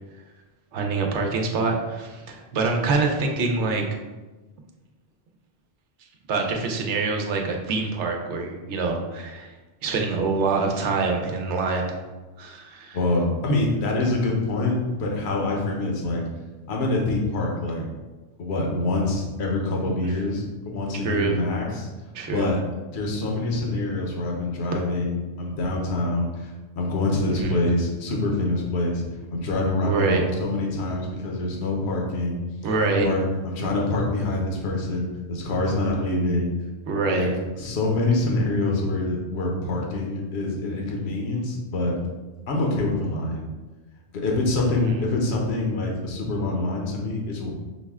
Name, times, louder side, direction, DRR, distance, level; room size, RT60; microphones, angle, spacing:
voice 1, 0.7-3.8 6.3-9.5 9.8-12.0 12.4-13.0 21.0-21.3 22.1-22.5 27.4-27.5 29.8-30.2 32.6-33.1 36.9-37.3, right 4 dB, 85° right, 2 dB, 1.0 m, -25 dB
voice 2, 12.9-16.2 16.7-17.9 18.4-21.9 22.3-22.6 22.9-26.5 26.8-29.0 29.3-32.4 32.9-36.5 37.1-37.3 37.6-42.0 42.5-43.4 44.1-47.5, left 2 dB, 70° left, 0 dB, 1.1 m, -25 dB
6.1 x 2.1 x 3.5 m, 1.2 s
omnidirectional pair, 1.2 m